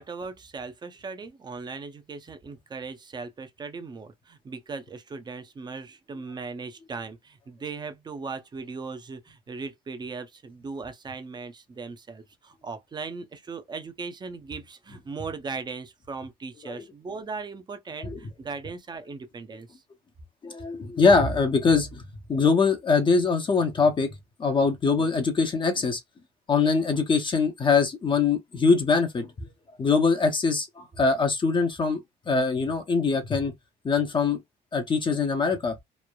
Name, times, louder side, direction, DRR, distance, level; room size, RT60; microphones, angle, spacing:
voice 1, 0.0-19.8, right 4 dB, 25° right, 0.6 m, -38 dB
voice 2, 20.4-26.0 26.5-29.5 29.8-32.0 32.3-33.5 33.8-34.4 34.7-35.7, left 4 dB, 30° left, 0.7 m, -23 dB
3.1 x 2.0 x 2.2 m
cardioid pair, 110°, 17 cm